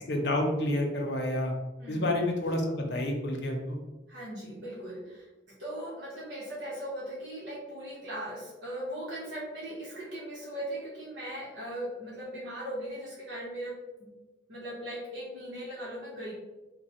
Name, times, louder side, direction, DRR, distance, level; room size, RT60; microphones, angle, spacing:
voice 1, 0.1-1.5 1.9-3.8, left 1 dB, 65° left, 1 dB, 0.7 m, -29 dB
voice 2, 1.8-2.1 4.1-13.7 14.0-14.1 14.5-16.3, right 1 dB, 80° right, -7 dB, 1.0 m, -39 dB
3.1 x 2.2 x 4.2 m, 1.1 s
head